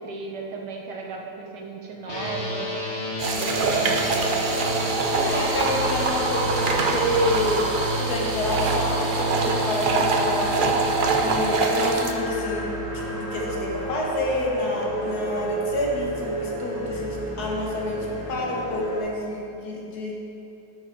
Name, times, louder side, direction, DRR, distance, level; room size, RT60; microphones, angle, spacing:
voice 1, 0.0-2.7 3.3-4.5, right 4 dB, 80° right, 0 dB, 1.7 m, -35 dB
sound 1, 2.1-13.9, equal, 40° left, 1.6 m, -31 dB
sound 2, 3.2-12.1, right 4 dB, 55° right, 0.6 m, -25 dB
voice 2, 5.2-7.6 8.0-10.7 11.2-20.1, left 1 dB, 70° left, -2 dB, 2.0 m, -28 dB
sound 3, 5.5-19.0, right 1 dB, 15° right, 2.2 m, -33 dB
12.5 x 6.5 x 4.6 m, 2.8 s
omnidirectional pair, 1.8 m